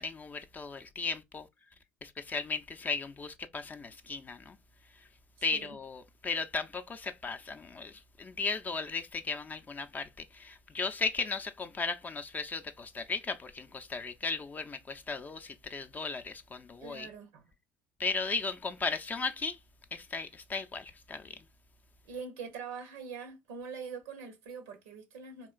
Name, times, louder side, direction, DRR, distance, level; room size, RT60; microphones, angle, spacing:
voice 1, 0.0-1.5 2.0-4.6 5.4-17.1 18.0-19.6 19.9-21.4, left 4 dB, 30° left, 0.4 m, -36 dB
voice 2, 16.8-17.5 22.0-25.5, right 5 dB, 80° right, 0.6 m, -43 dB
3.5 x 2.4 x 2.3 m
hypercardioid pair, 60°, 6 cm